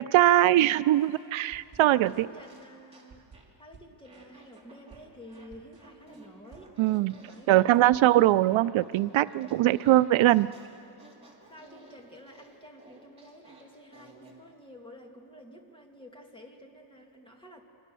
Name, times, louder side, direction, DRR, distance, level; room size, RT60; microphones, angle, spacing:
voice 1, 0.0-2.3 6.8-7.2 7.5-10.5, right 14 dB, 85° right, 15 dB, 0.5 m, -22 dB
Fart, 0.9-3.6 4.0-14.4, right 2 dB, 15° right, 3.1 m, -56 dB
voice 2, 1.2-3.3 3.6-6.7 7.1-8.2 9.7-10.1 10.7-11.0 11.5-17.6, equal, 10° left, 1 dB, 2.1 m, -51 dB
sound 1, 1.5-2.2 2.5-7.0 7.3-8.0, right 5 dB, 40° right, 2.1 m, -57 dB
28.5 x 24.5 x 6.9 m, 2.7 s
wide cardioid pair, 175°, 46 cm